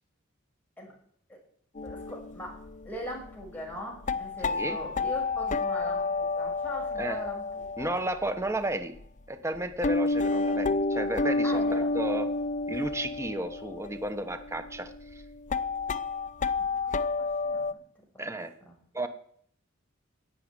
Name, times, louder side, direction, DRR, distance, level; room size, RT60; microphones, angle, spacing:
sound 1, 1.8-8.3 9.0-9.1 9.6-17.7, left 3 dB, 40° left, 0.6 m, -30 dB
voice 1, 1.8-7.9 11.4-11.9 16.6-17.8 18.1-18.2 18.7-18.8, equal, 10° left, -2 dB, 6.1 m, -41 dB
voice 2, 4.4-4.8 7.0-7.2 7.8-8.9 9.3-12.3 12.7-14.9 18.2-18.5 18.9-19.1, right 1 dB, 15° right, 8 dB, 1.1 m, -33 dB
11.0 x 7.9 x 9.9 m, 0.63 s
head